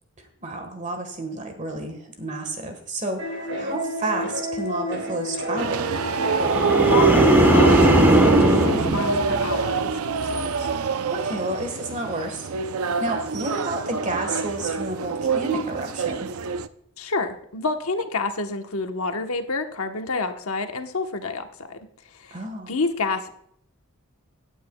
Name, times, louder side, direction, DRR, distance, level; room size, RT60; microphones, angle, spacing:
voice 1, 0.2-3.2 3.6-5.9 11.1-12.5 13.0-16.3 22.3-22.8, right 2 dB, 35° right, 5 dB, 1.4 m, -30 dB
sound 1, 3.2-8.6, equal, 55° right, 2.3 m, -30 dB
sound 2, 5.6-16.7, right 5 dB, 90° right, 0.5 m, -25 dB
sound 3, 6.4-9.8 10.2-10.6, right 1 dB, 10° right, 1.1 m, -19 dB
voice 2, 6.8-10.7 17.0-23.3, left 3 dB, 90° left, 6 dB, 1.1 m, -29 dB
17.0 x 9.2 x 2.3 m, 0.70 s
head